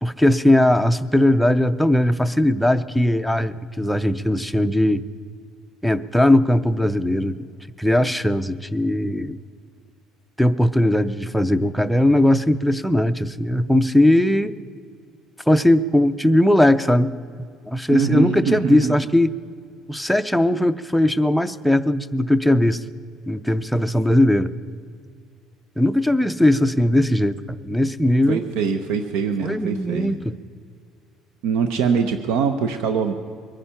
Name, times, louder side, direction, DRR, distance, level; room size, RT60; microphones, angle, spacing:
voice 1, 0.0-5.0 5.8-7.4 7.8-9.4 10.4-14.5 15.5-17.1 17.7-19.3 19.9-22.8 23.3-24.5 25.8-28.5 29.4-30.4, left 1 dB, ahead, 8 dB, 0.4 m, -19 dB
voice 2, 17.9-19.1 28.3-30.1 31.4-33.1, right 6 dB, 80° right, 7 dB, 0.9 m, -23 dB
22.5 x 10.0 x 5.8 m, 2.2 s
cardioid pair, 175°, 0 cm